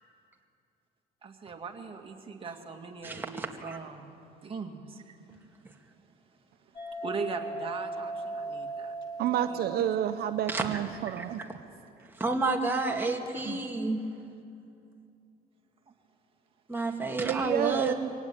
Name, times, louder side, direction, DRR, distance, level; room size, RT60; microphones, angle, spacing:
voice 1, 1.2-4.1 4.4-5.2 7.0-8.9 9.5-9.6 13.3-13.7, right 4 dB, 35° right, 3 dB, 2.4 m, -40 dB
voice 2, 3.0-3.8 10.5-10.8 11.2-11.3 12.1-14.0 16.7-17.9, right 3 dB, 10° right, 1 dB, 2.4 m, -30 dB
sound 1, 6.7-11.5, right 2 dB, 25° left, 3.5 m, -39 dB
voice 3, 9.2-11.4 17.2-17.9, right 11 dB, 70° right, 9 dB, 0.8 m, -29 dB
24.0 x 18.0 x 9.0 m, 2.6 s
cardioid pair, 110°, 17 cm